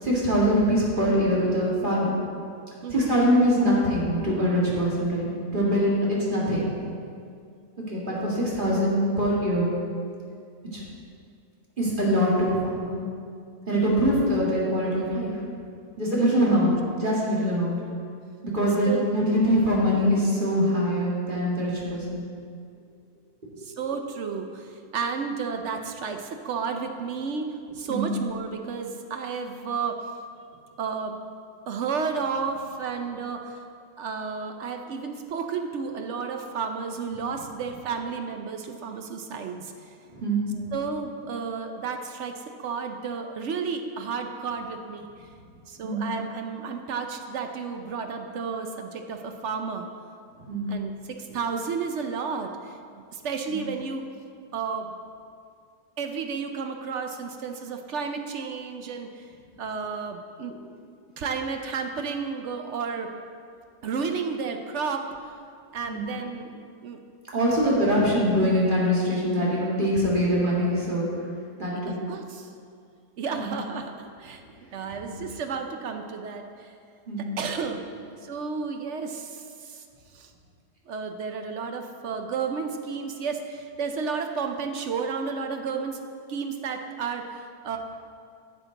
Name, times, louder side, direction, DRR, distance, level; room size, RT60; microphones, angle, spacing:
voice 1, 0.0-2.1 2.9-5.3 5.5-6.7 7.9-9.7 10.7-10.8 11.8-13.0 13.7-15.3 16.0-17.8 18.4-22.2 27.9-28.1 40.1-40.7 45.8-46.0 50.5-50.7 53.5-53.6 65.9-66.0 67.3-71.1 71.6-72.0 73.3-73.5 75.0-75.2 77.1-77.3, equal, 30° right, -5 dB, 2.1 m, -23 dB
voice 2, 18.8-19.5 23.6-30.0 30.8-31.1 31.7-33.6 34.0-39.9 40.7-45.3 45.7-49.9 50.7-52.8 53.1-54.0 54.5-54.9 56.0-59.3 59.6-60.5 61.2-63.1 63.8-65.1 65.7-66.5 66.8-67.0 67.6-67.8 71.7-72.5 73.2-73.9 74.2-74.4 74.7-76.8 77.2-77.8 78.2-79.8 80.1-80.3 80.9-86.0 86.3-87.8, right 5 dB, 60° right, 5 dB, 0.8 m, -32 dB
10.5 x 7.3 x 4.0 m, 2.3 s
omnidirectional pair, 1.7 m